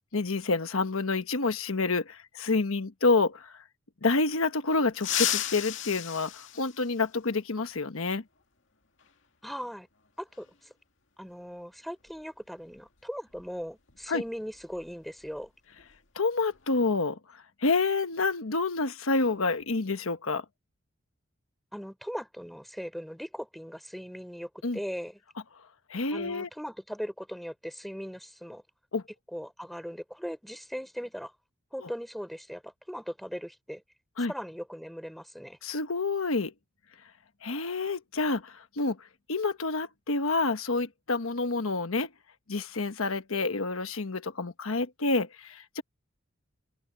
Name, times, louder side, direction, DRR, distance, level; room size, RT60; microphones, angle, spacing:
voice 1, 0.1-3.6 4.0-8.2 14.1-14.2 16.1-20.4 24.6-24.8 25.9-26.5 28.9-29.0 34.2-34.3 35.6-36.5 37.4-39.0 39.3-42.1 42.5-45.8, left 3 dB, 90° left, 1.1 m, -28 dB
glass drop malthouse, 4.9-7.4 9.0-9.1 10.3-10.4 12.1-12.2 12.6-12.8 13.3-15.5 15.7-16.0 16.4-16.8, left 11 dB, 65° left, 2.2 m, -34 dB
voice 2, 9.4-9.9 10.2-10.7 11.2-15.5 21.7-25.2 26.1-28.6 29.3-31.3 31.7-33.8 34.3-35.6, equal, ahead, 4.2 m, -39 dB
open air
head